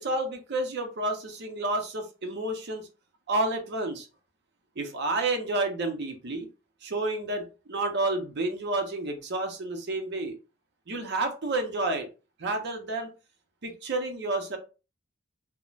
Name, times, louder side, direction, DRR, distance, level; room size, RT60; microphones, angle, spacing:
voice 1, 0.0-2.9 3.3-4.1 4.8-6.5 6.8-10.3 10.9-12.1 12.4-13.1 13.6-14.6, right 2 dB, 55° right, 5 dB, 0.6 m, -30 dB
2.4 x 2.1 x 3.0 m, 0.32 s
head